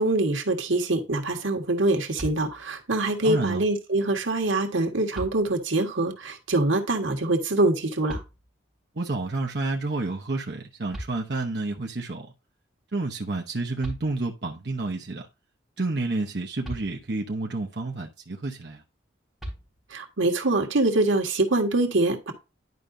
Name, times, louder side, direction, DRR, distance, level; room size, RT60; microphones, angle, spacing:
voice 1, 0.0-8.2 19.9-22.3, right 2 dB, 90° right, 1.6 m, -24 dB
sound 1, 2.2-2.9 4.4-4.5 5.1-5.9 8.1-8.8 10.6-10.7 10.9-11.8 13.5-13.6 13.8-14.6 16.6-17.4 19.4-20.2, equal, ahead, 3.6 m, -40 dB
voice 2, 3.2-3.6 8.9-12.3 12.9-15.3 15.8-18.8, right 2 dB, 60° right, 0.9 m, -30 dB
11.0 x 4.9 x 2.6 m
head